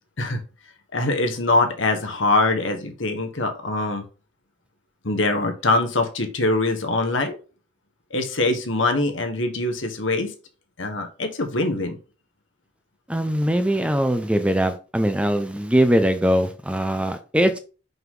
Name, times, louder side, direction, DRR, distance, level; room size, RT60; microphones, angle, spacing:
voice 1, 0.9-4.0 5.0-7.4 8.1-10.3 10.8-12.0, left 2 dB, 75° left, 5 dB, 1.4 m, -23 dB
voice 2, 13.1-17.6, equal, 5° right, 8 dB, 0.6 m, -21 dB
5.8 x 5.6 x 3.8 m, 0.34 s
head